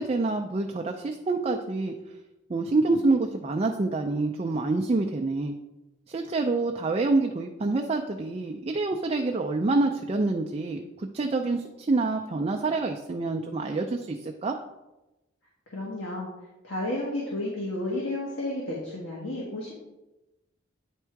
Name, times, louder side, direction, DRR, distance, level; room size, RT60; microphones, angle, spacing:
voice 1, 0.0-1.9 2.5-5.5 6.1-14.6, right 3 dB, 30° right, 4 dB, 0.4 m, -27 dB
voice 2, 15.7-16.3 16.6-19.7, left 1 dB, 75° left, -4 dB, 1.5 m, -32 dB
9.2 x 3.6 x 4.6 m, 1.0 s
head